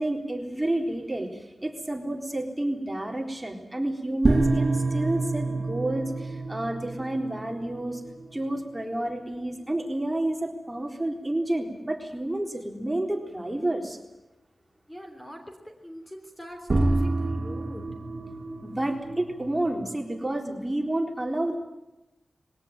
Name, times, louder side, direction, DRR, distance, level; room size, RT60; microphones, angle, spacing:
voice 1, 0.0-8.0 8.3-14.0 18.6-21.6, right 1 dB, 15° right, 2 dB, 4.0 m, -30 dB
sound 1, 4.2-11.0 16.7-20.2, right 2 dB, 40° right, 2.3 m, -29 dB
voice 2, 14.9-17.9, equal, 10° left, 3 dB, 3.3 m, -42 dB
21.5 x 18.0 x 9.0 m, 1.0 s
wide cardioid pair, 95°, 0 cm